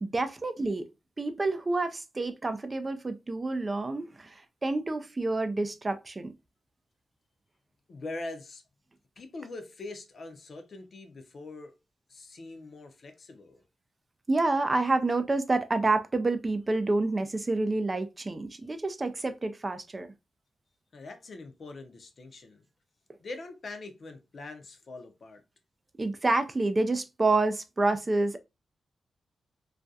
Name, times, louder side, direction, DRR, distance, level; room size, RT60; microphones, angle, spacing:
voice 1, 0.0-0.9 1.2-6.3 14.3-20.1 26.0-28.4, right 2 dB, 35° right, 0.4 m, -28 dB
voice 2, 7.9-8.6 9.2-11.7 12.1-13.6 20.9-22.7 23.2-25.4, left 2 dB, 60° left, 0.5 m, -43 dB
2.4 x 2.2 x 2.5 m
cardioid pair, 60°, 0 cm